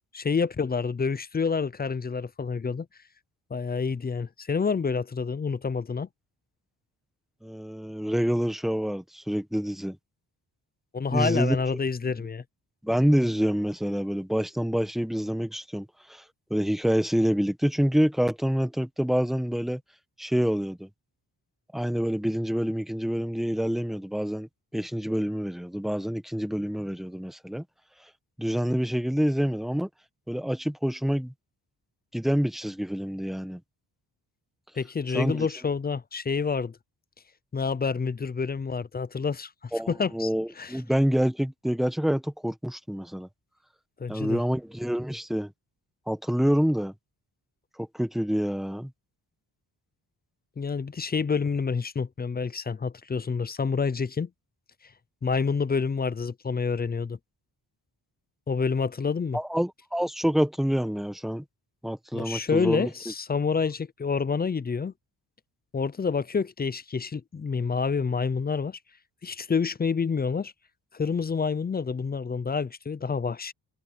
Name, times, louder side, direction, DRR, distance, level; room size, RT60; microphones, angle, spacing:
voice 1, 0.1-2.9 3.5-6.1 10.9-12.4 34.8-36.8 37.5-39.5 39.9-40.3 40.6-40.8 44.0-44.4 50.6-54.3 55.2-57.2 58.5-59.4 62.1-64.9 65.7-68.8 69.2-70.5 70.9-73.5, left 5 dB, 25° left, 0.4 m, -28 dB
voice 2, 7.4-10.0 11.1-11.6 12.8-16.2 16.5-19.8 20.2-20.9 21.7-27.6 28.4-29.9 30.3-31.3 32.1-33.6 35.1-35.5 39.7-43.3 44.1-45.5 46.1-46.9 47.8-48.9 59.3-61.4 61.8-62.9, equal, ahead, 1.4 m, -27 dB
wide cardioid pair, 165°, 42 cm